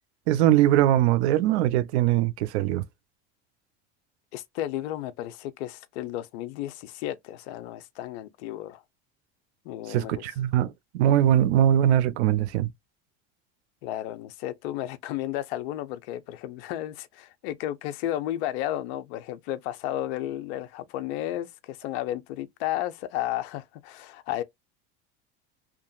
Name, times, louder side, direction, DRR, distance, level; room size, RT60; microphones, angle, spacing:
voice 1, 0.3-2.8 9.9-12.7, right 11 dB, 85° right, 0.5 m, -21 dB
voice 2, 4.3-8.8 9.7-10.2 13.8-24.4, left 13 dB, 80° left, 0.6 m, -33 dB
2.8 x 2.5 x 2.2 m
supercardioid pair, 105°, 33 cm